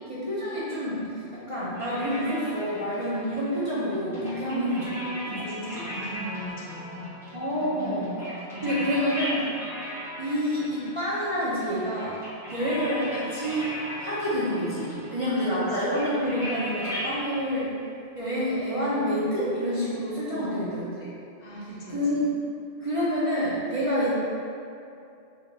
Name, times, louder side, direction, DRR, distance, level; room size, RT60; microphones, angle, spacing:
voice 1, 0.1-1.1 1.3-4.9 5.3-5.8 7.3-8.1 8.6-9.5 10.2-12.2 12.5-17.7 18.1-21.1 21.9-22.3 22.8-24.1, equal, 35° right, -9 dB, 0.6 m, -28 dB
sound 1, 1.7-17.2, equal, ahead, 1.3 m, -38 dB
voice 2, 4.1-7.2 7.6-8.2 8.5-9.0 15.3-15.5 20.3-20.8 21.4-22.0, right 1 dB, 55° left, -6 dB, 0.9 m, -36 dB
3.3 x 2.8 x 4.0 m, 2.5 s
omnidirectional pair, 1.1 m